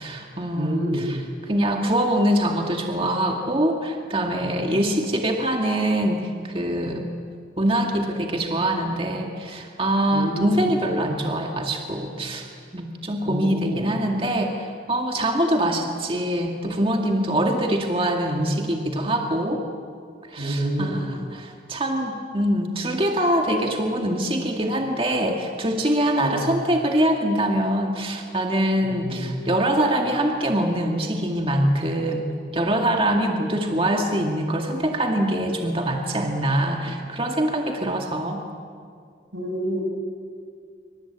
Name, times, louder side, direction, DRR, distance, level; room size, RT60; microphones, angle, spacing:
voice 1, 0.0-7.1 7.6-12.5 12.7-19.6 20.3-32.3 32.5-38.4, right 1 dB, 30° right, 2 dB, 2.1 m, -24 dB
voice 2, 0.5-1.1 10.1-10.6 13.2-13.9 20.4-21.0 26.2-26.5 28.8-29.3 39.3-39.8, right 1 dB, 90° right, 1 dB, 7.1 m, -28 dB
26.5 x 26.0 x 8.7 m, 2.2 s
head